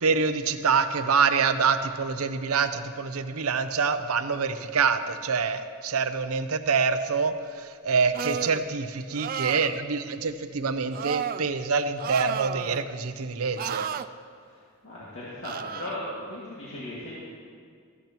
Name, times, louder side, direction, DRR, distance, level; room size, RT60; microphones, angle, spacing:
voice 1, 0.0-13.9, right 5 dB, 85° right, 10 dB, 0.7 m, -26 dB
sound 1, 8.1-8.6 9.1-9.8 10.9-11.4 12.0-12.8 13.6-14.1 15.4-15.9, right 7 dB, 40° right, 0.3 m, -32 dB
voice 2, 14.4-17.1, left 1 dB, 65° left, -8 dB, 2.2 m, -38 dB
15.0 x 13.5 x 3.0 m, 2.1 s
head